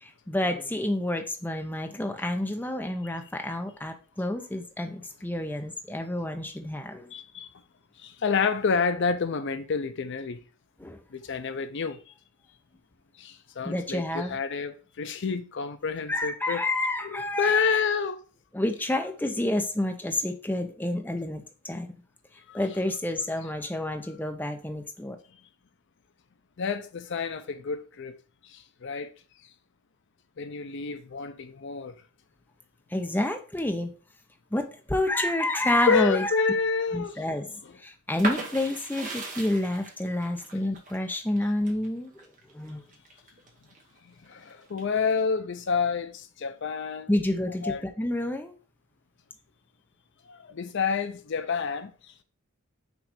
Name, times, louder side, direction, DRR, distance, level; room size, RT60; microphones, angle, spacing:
voice 1, 0.0-7.1 10.8-11.0 13.6-14.4 16.1-17.6 18.5-21.9 22.5-25.2 32.9-33.9 34.5-36.5 36.9-42.1 42.5-42.8 47.1-48.5, left 1 dB, 10° left, 0.6 m, -29 dB
voice 2, 7.1-7.5 8.0-10.4 11.1-12.0 13.2-16.6 17.0-18.2 22.5-22.6 26.6-28.1 28.4-29.1 30.4-31.9 35.9-37.2 37.6-37.7 44.3-47.1 47.6-47.8 50.3-51.9, left 5 dB, 55° left, 0.5 m, -29 dB
sound 1, 38.2-43.8 44.3-45.1, right 3 dB, 40° right, 1.2 m, -37 dB
6.1 x 3.2 x 5.0 m
head